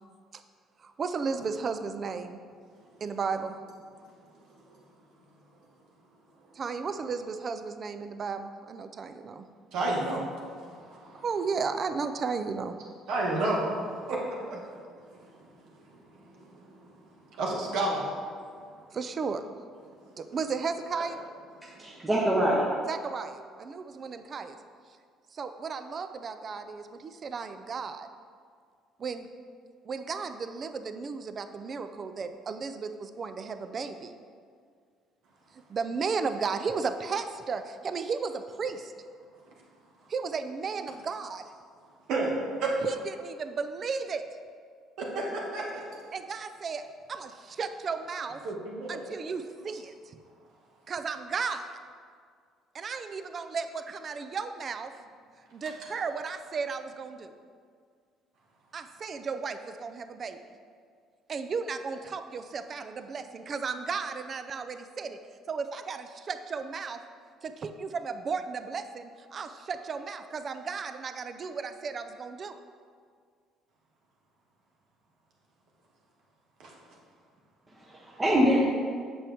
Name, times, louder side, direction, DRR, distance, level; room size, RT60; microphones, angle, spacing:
voice 1, 0.8-2.4 3.0-3.6 6.5-9.5 11.2-12.8 18.9-19.4 20.2-21.2 22.9-24.6 25.3-28.1 29.0-29.3 29.8-34.2 35.5-38.9 40.1-41.4 42.8-44.2 46.1-46.8 47.1-48.4 48.9-50.2 50.9-51.8 52.7-54.9 55.5-57.3 58.7-60.4 61.3-65.2 65.5-67.0 67.4-72.6, right 5 dB, 35° right, 9 dB, 0.4 m, -34 dB
voice 2, 9.7-11.2 13.1-14.6 15.2-15.3 15.8-15.9 16.4-16.9 17.3-18.0 42.1-42.7 45.5-45.8 48.4-49.0 76.6-76.7, right 2 dB, 70° right, -3 dB, 1.7 m, -31 dB
voice 3, 21.8-22.7 77.7-78.7, equal, 15° right, -5 dB, 0.9 m, -25 dB
8.6 x 7.0 x 3.5 m, 2.1 s
cardioid pair, 145°, 0 cm